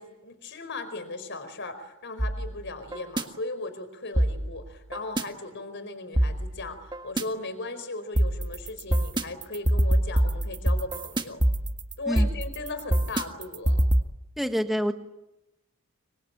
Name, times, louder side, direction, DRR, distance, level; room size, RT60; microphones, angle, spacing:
voice 1, 0.0-11.4 12.0-13.8, left 2 dB, 55° left, 12 dB, 4.7 m, -37 dB
sound 1, 2.2-3.2 4.2-5.2 6.2-7.2 8.2-14.0, right 1 dB, 20° right, 1.7 m, -25 dB
voice 2, 14.4-14.9, equal, ahead, 5 dB, 1.6 m, -26 dB
25.0 x 25.0 x 9.0 m, 0.93 s
head